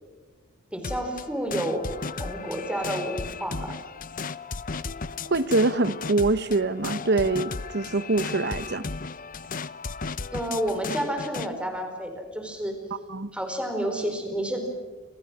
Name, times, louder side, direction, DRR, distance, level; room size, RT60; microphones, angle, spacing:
voice 1, 0.7-3.8 10.3-12.8 13.3-14.7, equal, 5° right, 4.5 m, -30 dB
sound 1, 0.8-11.5, left 4 dB, 40° left, 0.8 m, -35 dB
voice 2, 5.3-8.8 13.1-13.3, right 2 dB, 50° right, 1.0 m, -24 dB
29.5 x 27.5 x 6.3 m
head